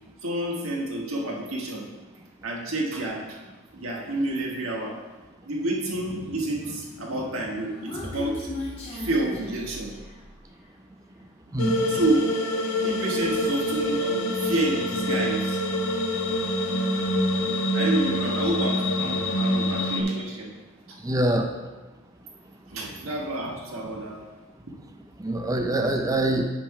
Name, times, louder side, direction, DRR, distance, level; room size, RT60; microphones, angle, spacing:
voice 1, 0.2-1.8 2.4-3.4 3.7-5.0 5.4-8.5 8.9-9.9 11.8-12.2 12.8-15.6 17.7-20.5 20.9-21.0 22.7-24.2, right 1 dB, 85° right, -1 dB, 1.5 m, -29 dB
Human voice, 7.3-10.3, left 1 dB, 30° left, 1.6 m, -36 dB
sound 1, 11.6-20.0, left 1 dB, 90° left, 0.9 m, -26 dB
voice 2, 21.0-21.5 25.2-26.4, right 1 dB, 15° right, 4 dB, 0.5 m, -24 dB
8.6 x 3.4 x 5.7 m, 1.2 s
head